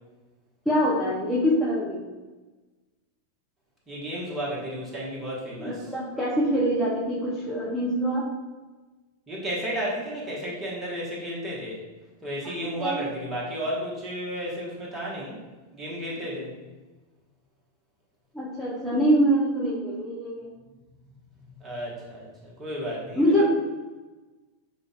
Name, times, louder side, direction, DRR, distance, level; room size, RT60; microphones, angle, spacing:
voice 1, 0.7-2.1 5.6-8.3 12.8-13.0 18.3-20.5 23.2-23.5, equal, ahead, -8 dB, 0.7 m, -24 dB
voice 2, 3.9-5.9 9.3-11.8 12.2-15.4 15.7-16.5 21.6-23.5, equal, 20° right, -4 dB, 1.3 m, -33 dB
6.5 x 2.5 x 2.4 m, 1.2 s
figure-of-eight pair, 90°, 0 cm